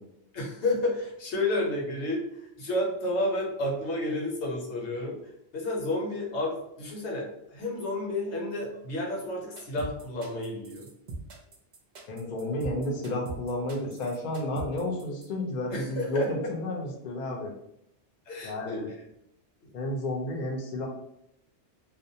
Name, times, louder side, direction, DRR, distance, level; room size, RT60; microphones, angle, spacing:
voice 1, 0.3-5.2 5.5-10.9 15.7-16.5 18.3-18.9, left 1 dB, 80° left, -2 dB, 1.0 m, -31 dB
sound 1, 9.6-15.3, right 3 dB, 50° right, 0.6 m, -41 dB
voice 2, 12.1-17.5 18.4-18.9 19.7-20.9, left 1 dB, 55° left, 0 dB, 0.6 m, -31 dB
2.4 x 2.1 x 2.7 m, 0.78 s
omnidirectional pair, 1.1 m